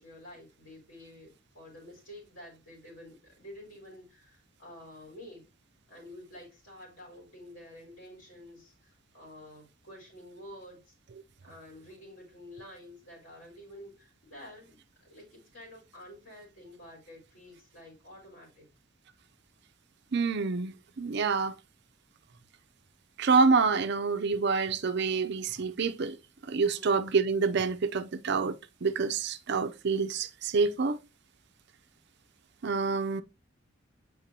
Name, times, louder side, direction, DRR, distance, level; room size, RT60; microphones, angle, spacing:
voice 1, 0.0-5.5 5.9-10.9 11.4-18.7 26.7-27.1 32.8-33.1, left 1 dB, 80° left, 3.7 m, -50 dB
voice 2, 20.1-21.5 23.2-26.2 26.4-31.0 32.6-33.2, right 4 dB, 60° right, 0.6 m, -27 dB
7.5 x 4.9 x 2.8 m
head